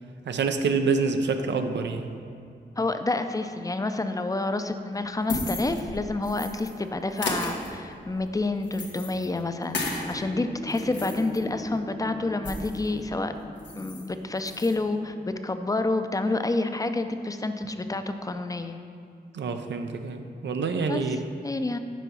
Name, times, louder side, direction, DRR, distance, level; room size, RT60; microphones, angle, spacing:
voice 1, 0.3-2.1 19.3-21.4, right 4 dB, 85° right, 7 dB, 0.5 m, -27 dB
voice 2, 2.8-13.3 13.7-18.8 20.9-21.0 21.4-21.8, left 2 dB, 20° left, 8 dB, 0.5 m, -28 dB
sound 1, 4.9-6.7 7.1-10.1 10.5-12.9 13.2-13.3 13.6-14.1 14.4-14.8, left 2 dB, 90° left, 1.0 m, -35 dB
sound 2, 9.8-15.2, equal, 20° right, 0.7 m, -42 dB
6.2 x 4.6 x 5.6 m, 2.4 s
cardioid pair, 55°, 18 cm